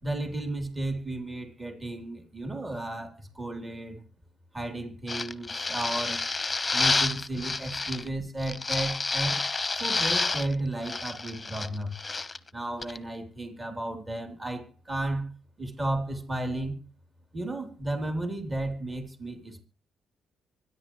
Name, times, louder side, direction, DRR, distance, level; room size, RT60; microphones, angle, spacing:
voice 1, 0.0-4.0 4.5-6.2 6.7-9.4 9.7-12.0 12.5-15.3 15.6-16.8 17.3-19.6, right 1 dB, 20° right, 3.3 m, -33 dB
sound 1, 5.1-8.1 8.4-10.5 10.8-12.4 12.8-13.0, left 3 dB, 20° left, 1.0 m, -29 dB
25.5 x 10.5 x 3.1 m
cardioid pair, 90°, 0 cm